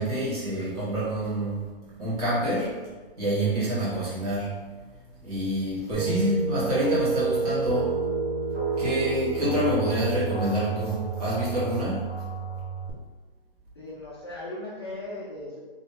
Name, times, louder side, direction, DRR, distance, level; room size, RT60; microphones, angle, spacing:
voice 1, 0.0-1.7 2.0-2.7 3.2-4.5 5.2-7.9 8.8-12.0, equal, 40° right, -8 dB, 1.4 m, -27 dB
sound 1, 5.9-12.9, right 5 dB, 85° right, 1.3 m, -29 dB
voice 2, 13.8-15.6, left 2 dB, 25° left, -7 dB, 0.4 m, -37 dB
2.8 x 2.7 x 3.8 m, 1.4 s
hypercardioid pair, 165°, 30 cm